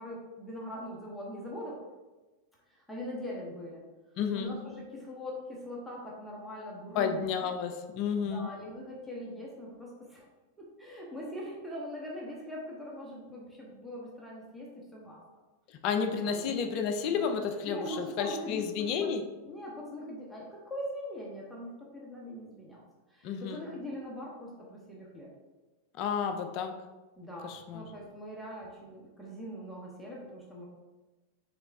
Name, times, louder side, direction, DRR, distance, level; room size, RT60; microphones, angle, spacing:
voice 1, 0.0-1.8 2.7-3.8 4.3-7.5 8.2-10.3 10.6-15.2 16.0-16.5 17.7-19.2 19.4-22.8 23.1-25.3 27.2-30.7, equal, 5° left, -4 dB, 0.9 m, -42 dB
voice 2, 4.2-4.6 6.9-8.5 15.8-19.2 23.2-23.6 26.0-26.7 27.4-27.8, left 6 dB, 40° left, 7 dB, 0.4 m, -31 dB
4.0 x 3.3 x 3.3 m, 1.2 s
figure-of-eight pair, 90°, 0 cm